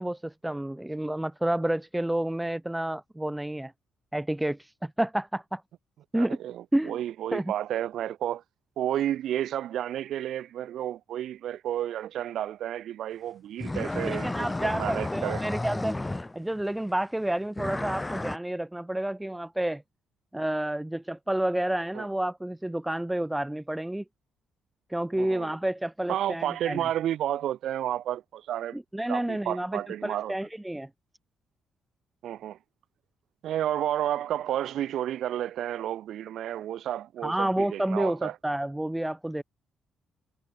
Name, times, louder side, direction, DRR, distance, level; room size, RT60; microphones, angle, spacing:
voice 1, 0.0-3.7 4.1-5.6 6.1-6.4 6.7-7.0 7.3-7.5 14.0-16.0 16.3-19.8 20.3-24.0 24.9-26.8 28.7-30.9 37.2-39.4, right 1 dB, 10° right, 0.9 m, -30 dB
voice 2, 6.1-8.4 8.8-15.4 21.9-22.1 25.2-25.5 26.1-28.8 29.1-30.3 32.2-32.6 33.4-38.4, right 11 dB, 75° right, 0.6 m, -31 dB
sound 1, 13.6-16.6 17.6-18.4, left 2 dB, 15° left, 1.4 m, -32 dB
cardioid pair, 90°, 0 cm